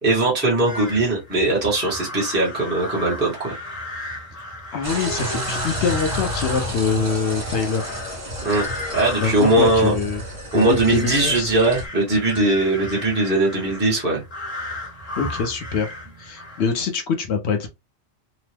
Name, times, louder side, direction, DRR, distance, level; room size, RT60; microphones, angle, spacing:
voice 1, 0.0-3.5 8.4-8.7 8.9-9.9 10.5-14.2, right 2 dB, 10° right, 1.0 m, -20 dB
sound 1, 0.6-16.9, left 2 dB, 35° left, 1.0 m, -35 dB
voice 2, 4.7-7.9 9.2-10.2 10.5-11.5 15.2-15.9 16.2-17.7, left 5 dB, 70° left, 0.8 m, -24 dB
sound 2, 4.8-11.9, equal, 40° right, 1.4 m, -31 dB
2.9 x 2.0 x 3.2 m
omnidirectional pair, 1.2 m